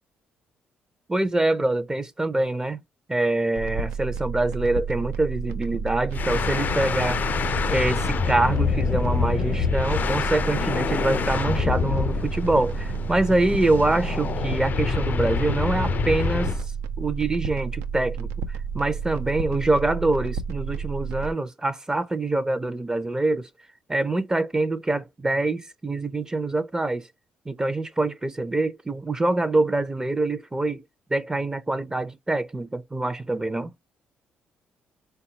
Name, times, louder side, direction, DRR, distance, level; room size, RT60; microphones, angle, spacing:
voice 1, 1.1-2.8 3.1-7.2 7.7-16.6 17.0-23.5 23.9-27.1 27.5-30.8 31.1-33.7, right 2 dB, 15° right, 0.4 m, -25 dB
sound 1, 3.6-21.3, right 6 dB, 90° right, 0.4 m, -31 dB
sound 2, 6.1-16.7, left 6 dB, 45° left, 0.4 m, -26 dB
3.7 x 2.3 x 2.7 m
supercardioid pair, 70°, 4 cm